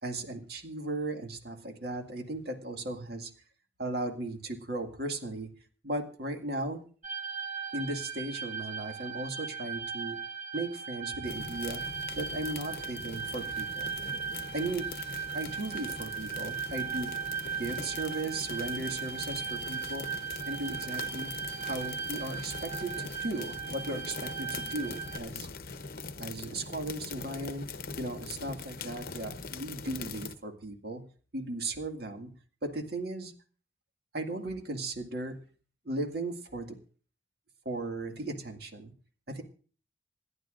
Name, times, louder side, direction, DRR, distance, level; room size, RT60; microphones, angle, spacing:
voice 1, 0.0-3.3 3.8-5.5 5.8-6.8 7.7-10.2 10.5-11.8 12.1-13.9 14.5-14.9 15.3-17.1 17.6-20.0 20.5-21.3 21.6-25.5 26.2-27.7 28.0-31.0 31.3-32.3 32.6-33.3 34.1-35.4 35.8-36.8 37.7-38.9 39.3-39.4, right 2 dB, 55° right, 3 dB, 2.0 m, -36 dB
sound 1, 7.0-25.2, right 6 dB, 40° right, 1.5 m, -38 dB
sound 2, 11.3-30.4, left 4 dB, 50° left, 0.9 m, -42 dB
27.5 x 11.0 x 2.6 m, 0.40 s
head